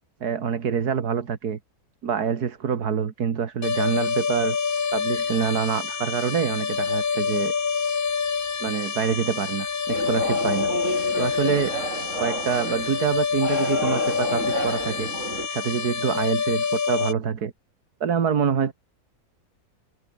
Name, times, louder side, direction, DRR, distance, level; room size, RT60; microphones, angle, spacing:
voice 1, 0.2-1.6 2.0-4.6 4.9-7.5 8.6-10.7 11.1-11.8 12.2-15.1 15.5-17.5 18.0-18.7, right 7 dB, 85° right, 2.2 m, -26 dB
sound 1, 3.6-17.1, left 6 dB, 40° left, 1.2 m, -27 dB
sound 2, 9.9-15.5, right 2 dB, 50° right, 7.0 m, -31 dB
omnidirectional pair, 1.6 m